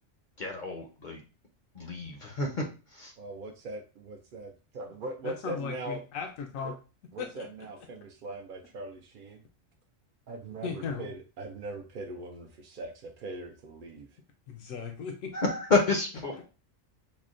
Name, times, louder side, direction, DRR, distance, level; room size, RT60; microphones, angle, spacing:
voice 1, 0.4-1.2 1.7-2.7 2.9-3.1 15.3-16.4, left 3 dB, 50° left, 2 dB, 0.6 m, -29 dB
voice 2, 3.2-6.0 6.6-6.7 7.1-9.4 10.3-14.1, right 2 dB, 65° right, 2 dB, 0.5 m, -41 dB
voice 3, 5.2-6.7 7.2-7.4 10.6-11.1 14.5-15.3, left 5 dB, 85° left, 3 dB, 1.0 m, -37 dB
5.8 x 2.2 x 2.4 m, 0.34 s
omnidirectional pair, 1.4 m